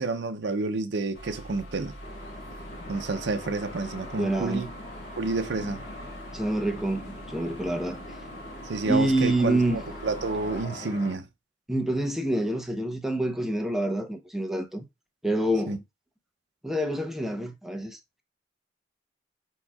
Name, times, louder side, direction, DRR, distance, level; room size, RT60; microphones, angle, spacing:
voice 1, 0.0-1.9 2.9-4.7 5.2-5.8 8.6-11.3 15.7-15.8, right 3 dB, 75° right, 0.6 m, -29 dB
sound 1, 1.1-10.6, equal, 75° left, 2.2 m, -44 dB
sound 2, 2.0-11.1, left 1 dB, 55° left, 2.3 m, -42 dB
voice 2, 4.2-4.7 6.3-8.0 8.8-9.8 11.7-14.8 15.2-15.8 16.6-18.0, right 1 dB, ahead, 0.7 m, -27 dB
4.7 x 4.4 x 2.3 m
head